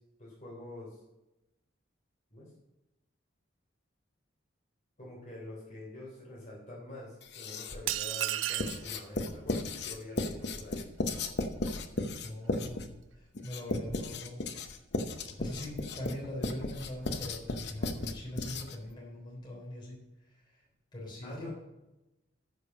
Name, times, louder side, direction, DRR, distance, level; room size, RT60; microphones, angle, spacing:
voice 1, 0.2-1.0 2.3-2.5 5.0-10.9 21.2-21.5, left 2 dB, 40° left, -4 dB, 3.1 m, -46 dB
Writing, 7.2-7.9 8.6-18.9, left 2 dB, 55° left, 0.8 m, -35 dB
sound 1, 7.9-8.9, right 13 dB, 80° right, 0.4 m, -32 dB
voice 2, 12.2-14.4 15.4-20.6 20.9-21.5, left 1 dB, 25° left, -3 dB, 3.5 m, -42 dB
13.5 x 5.3 x 5.2 m, 0.96 s
head